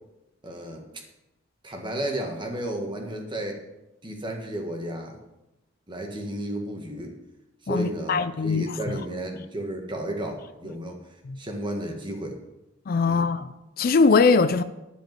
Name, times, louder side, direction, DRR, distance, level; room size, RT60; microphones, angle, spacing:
voice 1, 0.4-0.8 1.6-3.6 4.0-5.2 5.9-7.1 7.6-11.0 11.4-12.4 13.0-13.3, right 1 dB, 25° right, 1.7 m, -33 dB
voice 2, 7.7-9.0 11.3-11.4 12.9-14.6, left 4 dB, 45° left, 0.4 m, -22 dB
12.0 x 5.1 x 7.6 m
head